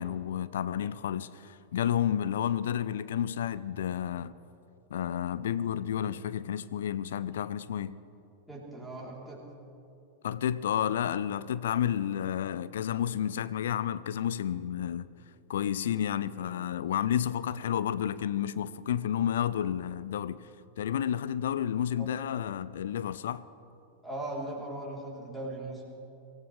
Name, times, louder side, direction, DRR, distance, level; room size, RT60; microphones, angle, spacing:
voice 1, 0.0-4.4 4.9-8.0 10.2-15.1 15.5-20.5 20.8-23.4, left 10 dB, 60° left, 0.4 m, -31 dB
voice 2, 8.5-9.4 22.0-22.1 24.0-25.8, right 1 dB, ahead, 3.9 m, -38 dB
25.0 x 16.0 x 3.4 m
figure-of-eight pair, 90°, 0 cm